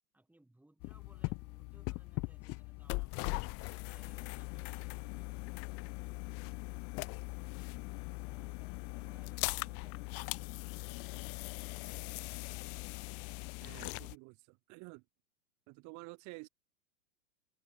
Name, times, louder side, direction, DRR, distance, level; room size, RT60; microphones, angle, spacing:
voice 1, 0.1-6.7 7.8-9.4 9.7-11.0, right 1 dB, 5° right, 5.7 m, -67 dB
sound 1, 0.8-14.1, left 28 dB, 30° left, 0.8 m, -40 dB
voice 2, 13.6-15.0 15.7-16.5, right 28 dB, 40° right, 2.1 m, -50 dB
figure-of-eight pair, 100°, 44 cm